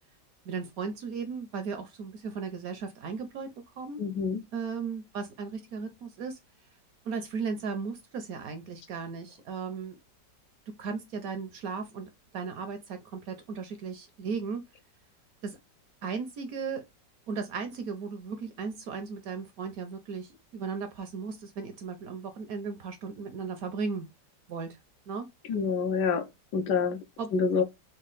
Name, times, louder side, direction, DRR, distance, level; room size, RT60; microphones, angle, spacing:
voice 1, 0.5-4.0 4.5-6.4 7.0-10.0 10.7-14.6 15.4-15.6 16.0-16.8 17.3-24.1 24.5-24.8 25.1-25.3 27.2-27.3, right 5 dB, 70° right, 0.9 m, -36 dB
voice 2, 4.0-4.4 25.4-27.0 27.3-27.6, left 5 dB, 75° left, 1.2 m, -27 dB
4.1 x 2.3 x 3.8 m
omnidirectional pair, 1.9 m